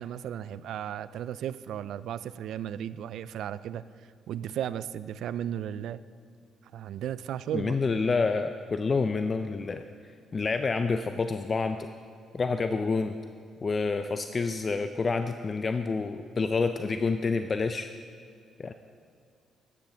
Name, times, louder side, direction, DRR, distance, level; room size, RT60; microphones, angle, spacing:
voice 1, 0.0-3.8 4.3-6.0 6.7-7.8, right 10 dB, 75° right, 16 dB, 0.3 m, -35 dB
voice 2, 7.5-9.8 10.3-11.8 12.3-13.2 13.6-17.9 18.6-18.7, left 4 dB, 35° left, 8 dB, 0.4 m, -28 dB
13.0 x 10.5 x 3.4 m, 2.3 s
cardioid pair, 90°, 0 cm